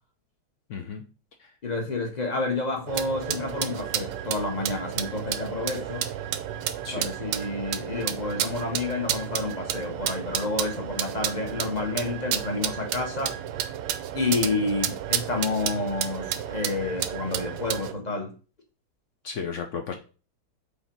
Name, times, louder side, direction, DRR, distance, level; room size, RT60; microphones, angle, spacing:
voice 1, 0.7-1.0 1.4-1.5 6.8-7.1 19.2-19.9, left 6 dB, 80° left, 0.6 m, -34 dB
voice 2, 1.6-6.1 6.9-13.4 14.1-18.3, left 3 dB, 30° left, 1.0 m, -29 dB
sound 1, 2.9-17.9, right 10 dB, 75° right, 1.2 m, -31 dB
5.2 x 4.0 x 4.4 m
omnidirectional pair, 2.1 m